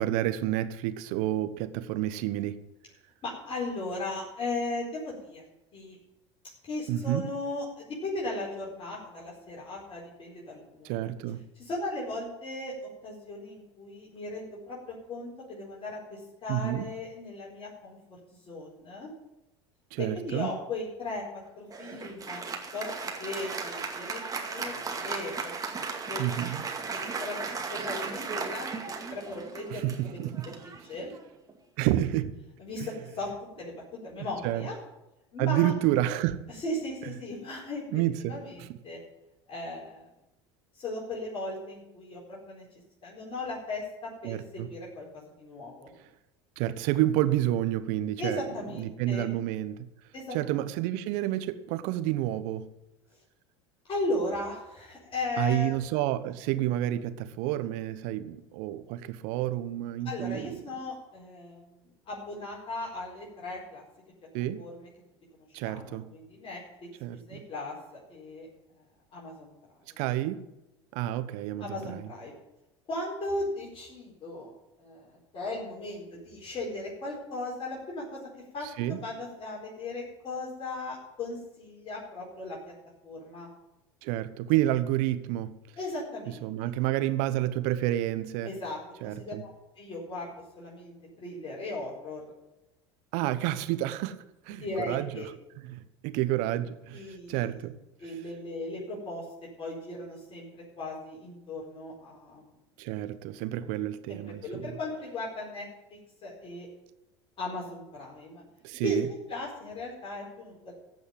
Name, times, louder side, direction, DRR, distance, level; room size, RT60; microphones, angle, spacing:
voice 1, 0.0-2.6 6.9-7.2 10.8-11.4 16.5-16.9 19.9-20.5 26.2-26.7 29.7-30.4 31.8-32.3 32.8-32.9 34.4-34.7 35.4-36.4 37.9-38.8 44.2-44.7 46.6-48.4 48.8-49.9 50.3-52.7 55.4-60.6 64.3-64.6 65.5-66.1 67.0-67.4 70.0-70.4 70.9-72.1 78.8-79.0 84.0-85.5 86.4-88.5 89.0-89.4 93.1-94.2 94.5-95.2 95.6-97.7 102.8-104.6 108.6-109.1, right 14 dB, 60° right, 12 dB, 1.0 m, -29 dB
voice 2, 3.2-5.4 5.7-6.0 6.6-11.1 11.6-18.0 18.5-19.1 20.0-21.2 21.6-22.4 22.7-22.9 23.2-25.7 26.1-26.6 26.9-28.7 29.1-30.2 30.6-31.1 32.6-33.3 33.6-34.8 35.3-35.7 36.5-38.0 38.3-39.0 39.5-40.1 40.8-42.6 43.0-45.1 45.4-45.9 48.2-49.3 50.1-50.6 53.9-55.8 60.0-61.8 62.1-63.8 64.6-64.9 65.5-66.6 67.3-68.5 69.1-69.5 69.9-70.0 71.6-72.3 72.9-74.5 74.8-78.0 78.5-82.6 83.0-83.5 85.8-86.7 88.4-89.5 89.8-90.3 90.6-92.2 94.6-95.3 96.9-97.7 98.0-99.2 99.6-102.5 104.1-106.7 107.4-108.4 108.8-110.7, left 2 dB, 40° left, -4 dB, 4.5 m, -37 dB
Applause, 21.7-31.5, right 4 dB, 25° right, 2.2 m, -36 dB
14.5 x 5.5 x 9.3 m, 0.95 s
hypercardioid pair, 80°, 15 cm